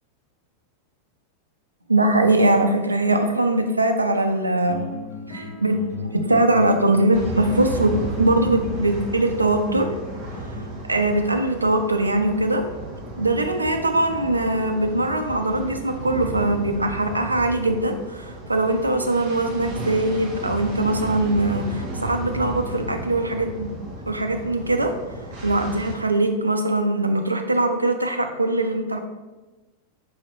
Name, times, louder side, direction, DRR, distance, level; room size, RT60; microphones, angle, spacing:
voice 1, 1.9-4.8 5.3-5.8 6.1-7.9 8.2-9.9 10.9-12.6 13.2-23.7 24.1-24.9 25.4-29.0, right 2 dB, 80° right, 6 dB, 0.4 m, -21 dB
sound 1, 4.6-10.7, left 4 dB, 40° left, 1.4 m, -36 dB
sound 2, 7.1-25.9, right 1 dB, 45° right, 1.1 m, -34 dB
4.6 x 2.9 x 3.0 m, 1.1 s
figure-of-eight pair, 90°, 0 cm